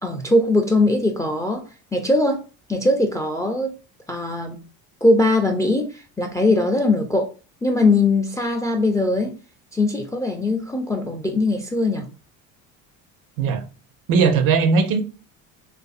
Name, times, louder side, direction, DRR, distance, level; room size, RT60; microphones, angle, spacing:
voice 1, 0.0-1.6 1.9-2.4 2.7-3.7 4.1-4.6 5.0-7.3 7.6-9.3 9.7-12.1, left 2 dB, 10° left, 0.3 m, -20 dB
voice 2, 14.1-15.0, right 5 dB, 60° right, 0.6 m, -18 dB
2.5 x 2.5 x 2.4 m
hypercardioid pair, 70°, 41 cm